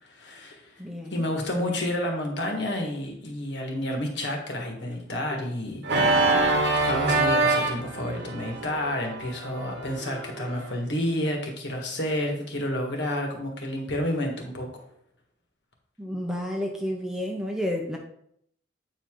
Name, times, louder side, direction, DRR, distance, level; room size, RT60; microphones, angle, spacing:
voice 1, 0.0-0.8 1.1-6.5 6.7-14.8, left 1 dB, 60° left, 2 dB, 1.6 m, -30 dB
voice 2, 0.8-1.3 16.0-18.0, equal, 5° right, 0 dB, 0.8 m, -31 dB
Organ, 5.8-10.7, right 3 dB, 60° right, 1.2 m, -25 dB
8.6 x 4.9 x 3.7 m, 0.70 s
head